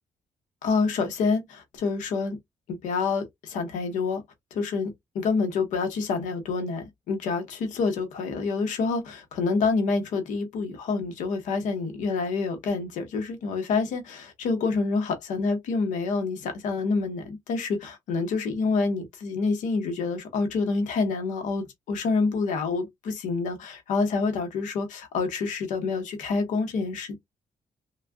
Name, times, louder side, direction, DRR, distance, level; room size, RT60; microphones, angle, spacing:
voice 1, 0.6-2.4 2.7-4.2 4.5-27.2, left 4 dB, 85° left, 1.1 m, -27 dB
3.3 x 2.5 x 2.3 m
cardioid pair, 70°, 13 cm